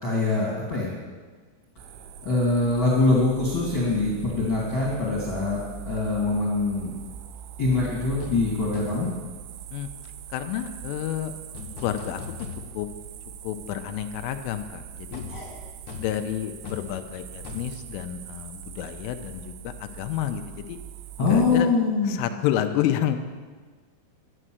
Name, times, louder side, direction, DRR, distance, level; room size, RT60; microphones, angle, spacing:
voice 1, 0.0-0.9 2.2-6.9 7.6-9.1 15.3-15.5 21.2-22.2, left 3 dB, 35° left, -5 dB, 2.4 m, -24 dB
sound 1, 1.8-21.6, right 7 dB, 80° right, 3.1 m, -42 dB
sound 2, 7.7-7.9 8.2-8.5 8.7-9.1 11.5-13.0 13.4-13.5 15.1-18.8 19.0-19.2, left 5 dB, 70° left, 1.9 m, -40 dB
voice 2, 10.3-11.3 11.8-12.2 12.7-12.9 13.4-15.2 16.0-20.8 21.2-21.7 22.0-23.3, left 11 dB, 85° left, 8 dB, 3.2 m, -30 dB
11.0 x 11.0 x 7.8 m, 1.4 s
omnidirectional pair, 5.8 m